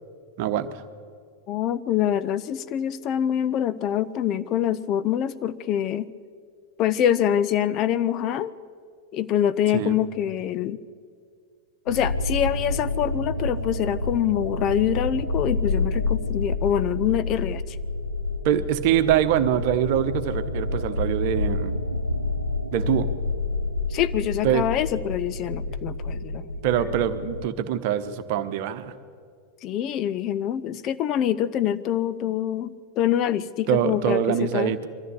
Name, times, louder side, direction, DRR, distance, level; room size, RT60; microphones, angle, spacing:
voice 1, 0.4-0.7 9.7-10.0 18.4-21.7 22.7-23.1 24.4-24.7 26.6-28.9 33.7-34.9, right 10 dB, 50° right, 11 dB, 1.1 m, -24 dB
voice 2, 1.5-6.1 6.8-8.5 9.1-10.8 11.9-17.8 23.9-26.4 29.6-34.7, left 10 dB, 35° left, 14 dB, 0.6 m, -25 dB
sound 1, 11.9-27.4, left 2 dB, 90° right, 0.8 m, -28 dB
23.0 x 14.0 x 8.2 m, 2.1 s
figure-of-eight pair, 90°, 0 cm